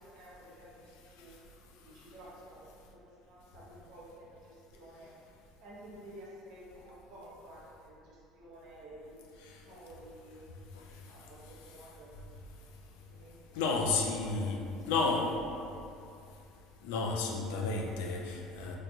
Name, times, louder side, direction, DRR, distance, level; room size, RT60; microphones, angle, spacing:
voice 1, 0.0-1.4 1.6-5.1 5.6-10.5 11.0-12.1 12.9-13.9 14.2-14.9 15.7-15.9, right 1 dB, 70° right, -5 dB, 0.9 m, -52 dB
voice 2, 13.6-14.6 14.8-15.3 16.8-18.8, left 3 dB, 90° left, 0 dB, 0.4 m, -31 dB
3.9 x 2.8 x 2.3 m, 2.5 s
cardioid pair, 125°, 0 cm